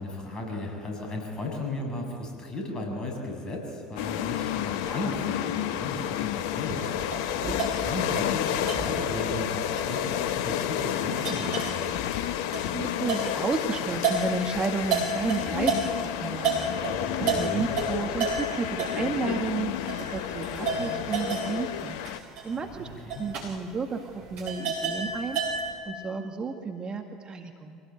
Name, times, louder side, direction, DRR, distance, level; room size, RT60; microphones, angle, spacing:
voice 1, 0.0-7.6 7.8-11.9 17.3-17.7 23.2-23.3, left 2 dB, 25° left, 1 dB, 7.5 m, -35 dB
sound 1, 4.0-22.2, left 11 dB, 70° left, 0.9 m, -31 dB
sound 2, 6.7-16.1 16.4-25.7, right 5 dB, 55° right, 6.6 m, -32 dB
voice 2, 12.7-22.0 22.4-22.9 23.2-25.6 25.8-27.8, right 4 dB, 30° right, 4 dB, 2.0 m, -32 dB
25.0 x 18.0 x 9.2 m, 2.4 s
hypercardioid pair, 70°, 3 cm